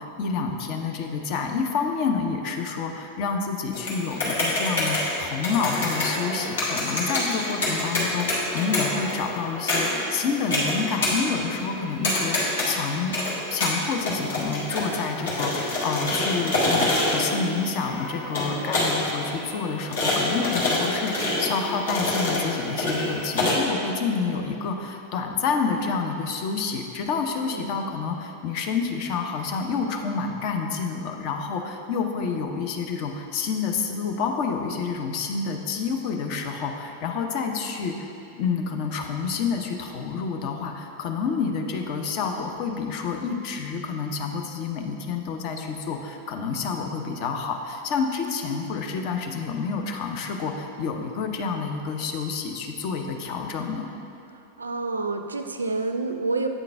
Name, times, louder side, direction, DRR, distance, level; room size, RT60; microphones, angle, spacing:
voice 1, 0.0-13.2 13.5-38.1 38.4-53.9, left 5 dB, 45° left, 3 dB, 0.6 m, -28 dB
sound 1, 3.7-23.5, left 1 dB, 60° left, 1.3 m, -27 dB
voice 2, 27.4-27.8 54.6-56.5, right 3 dB, 75° right, 7 dB, 0.3 m, -29 dB
8.0 x 3.8 x 3.5 m, 2.6 s
figure-of-eight pair, 90°, 0 cm